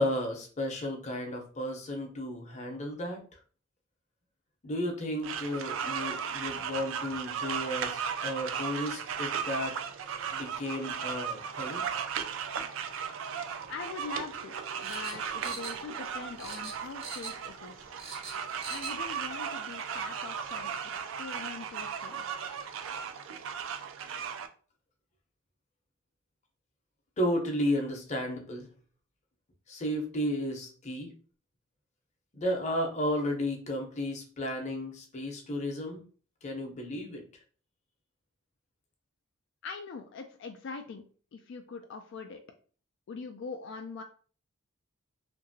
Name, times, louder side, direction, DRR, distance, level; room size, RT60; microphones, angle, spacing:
voice 1, 0.0-3.2 4.6-9.8 10.3-11.8 27.2-28.7 29.7-31.1 32.3-36.0 36.4-37.2, left 1 dB, 35° left, 2 dB, 0.7 m, -33 dB
sound 1, 5.2-24.5, right 7 dB, 65° right, 0.3 m, -36 dB
voice 2, 13.7-18.0 18.7-22.3 39.6-41.0 41.3-42.4 43.1-44.0, left 4 dB, 60° left, 5 dB, 0.3 m, -42 dB
sound 2, 14.8-16.1 16.4-17.5 17.8-19.0 19.3-19.4, right 4 dB, 25° right, 0.6 m, -42 dB
2.8 x 2.6 x 2.6 m, 0.40 s
head